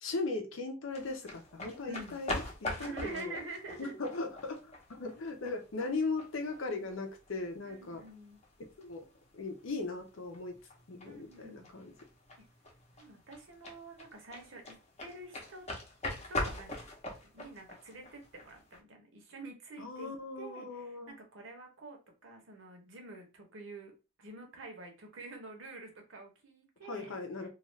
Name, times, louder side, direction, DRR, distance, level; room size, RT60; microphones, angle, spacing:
voice 1, 0.0-3.3 3.8-8.0 8.8-9.0 9.3-10.5 10.9-11.9 19.8-21.1 26.8-27.5, left 3 dB, 75° left, 4 dB, 0.6 m, -38 dB
sound 1, 0.9-18.8, left 2 dB, 35° left, 0.7 m, -43 dB
voice 2, 1.9-2.2 2.8-4.0 7.6-8.4 11.0-11.7 13.0-15.6 16.3-16.8 17.3-23.9 24.2-27.1 27.4-27.5, right 2 dB, 70° right, 2 dB, 0.9 m, -47 dB
2.4 x 2.4 x 3.1 m, 0.31 s
head